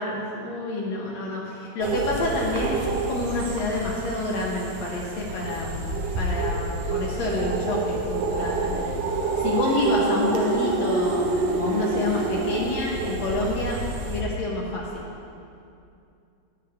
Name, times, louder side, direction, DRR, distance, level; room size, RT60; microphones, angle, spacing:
voice 1, 0.0-9.0 9.4-15.1, left 2 dB, 70° left, -3 dB, 2.0 m, -28 dB
sound 1, 1.8-14.2, right 3 dB, 70° right, 1.7 m, -28 dB
9.6 x 8.3 x 3.5 m, 2.5 s
omnidirectional pair, 3.3 m